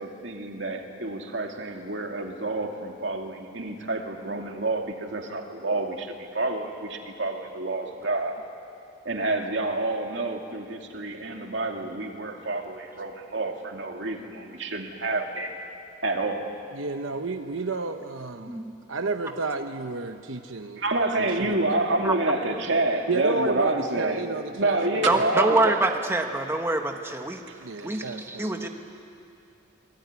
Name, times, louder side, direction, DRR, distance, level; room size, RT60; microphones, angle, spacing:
voice 1, 0.0-8.4 9.0-15.6 16.0-16.5 20.8-24.3 24.5-25.8, right 2 dB, 65° right, 3 dB, 2.5 m, -28 dB
voice 2, 16.7-18.6 18.9-20.8 21.2-21.5 23.1-25.2 27.5-28.7, right 3 dB, 85° right, 6 dB, 1.0 m, -31 dB
voice 3, 25.1-27.4 27.8-28.7, right 2 dB, 15° right, 3 dB, 1.4 m, -25 dB
27.0 x 21.5 x 9.7 m, 2.6 s
head